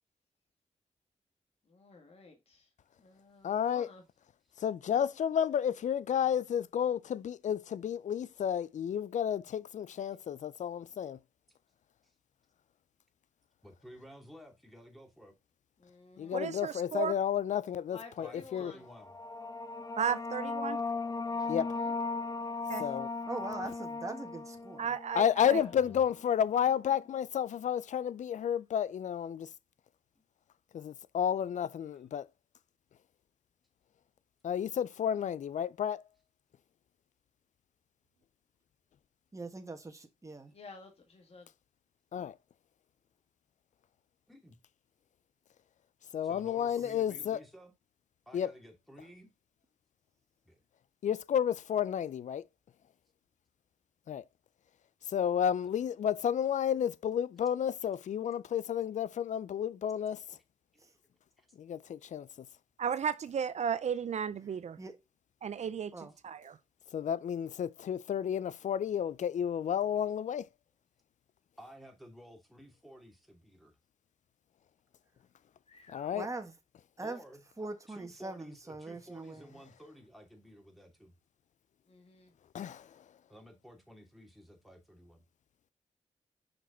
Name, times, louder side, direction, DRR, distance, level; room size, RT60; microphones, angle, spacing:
voice 1, 1.7-2.7 3.0-4.0 15.8-16.5 17.9-18.8 21.2-21.9 25.4-25.9 40.5-41.5 75.7-76.1 81.9-82.3, left 4 dB, 50° left, 1.7 m, -53 dB
voice 2, 3.4-3.9 4.6-11.2 16.2-18.7 21.5-21.8 22.8-23.1 25.1-29.5 30.7-32.3 34.4-36.0 42.1-42.3 46.1-47.4 48.3-48.5 51.0-52.4 54.1-54.2 55.1-60.2 61.6-62.3 66.9-70.5 75.9-76.3 82.5-82.9, left 9 dB, 75° left, 0.4 m, -31 dB
voice 3, 13.6-15.4 18.2-19.1 25.7-26.0 30.2-30.3 44.3-44.6 46.2-47.7 48.3-49.3 50.4-50.6 57.5-57.6 61.4-61.5 71.6-73.8 77.0-77.4 77.9-81.2 83.3-85.2, equal, ahead, 2.6 m, -53 dB
voice 4, 16.3-17.2 20.0-20.8 22.7-22.8 24.8-25.6 62.8-64.8 65.4-66.6, right 7 dB, 65° right, 0.5 m, -34 dB
sound 1, 18.9-26.2, left 3 dB, 30° left, 0.8 m, -37 dB
voice 5, 23.3-24.9 39.3-40.5 60.8-60.9 64.8-65.0 65.9-66.1 76.1-76.5 77.0-77.2 77.6-79.5, right 2 dB, 25° right, 1.5 m, -42 dB
5.8 x 5.2 x 3.8 m
cardioid pair, 55°, 13 cm